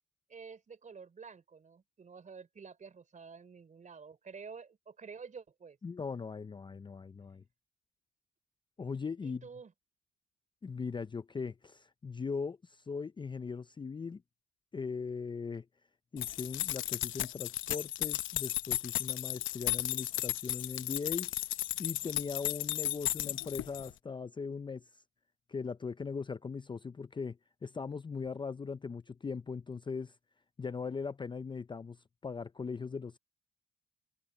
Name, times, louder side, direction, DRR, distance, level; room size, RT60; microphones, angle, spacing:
voice 1, 0.3-5.8 9.2-9.7, right 5 dB, 40° right, 4.3 m, -50 dB
voice 2, 5.8-7.4 8.8-9.5 10.6-14.2 14.7-15.7 16.1-21.3 21.8-24.9 25.5-30.1 30.6-33.2, left 5 dB, 25° left, 0.5 m, -39 dB
sound 1, 16.2-23.9, left 14 dB, 85° left, 0.8 m, -35 dB
cardioid pair, 90°, 20 cm